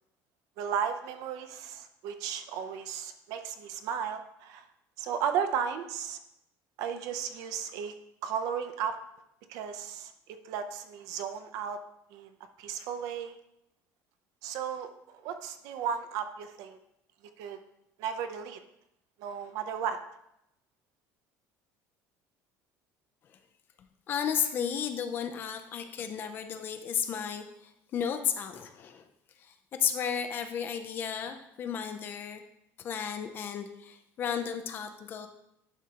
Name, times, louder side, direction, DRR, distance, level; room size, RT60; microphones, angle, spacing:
voice 1, 0.6-4.7 5.0-6.2 6.8-7.9 8.2-9.0 9.5-11.8 12.1-12.3 12.6-13.4 14.4-16.8 17.4-17.6 18.0-18.6 19.2-20.0, right 7 dB, 60° right, 9 dB, 0.7 m, -34 dB
voice 2, 24.1-29.0 29.4-32.4 32.8-35.3, left 8 dB, 30° left, 8 dB, 0.5 m, -33 dB
11.0 x 4.8 x 2.9 m, 0.80 s
cardioid pair, 175°, 7 cm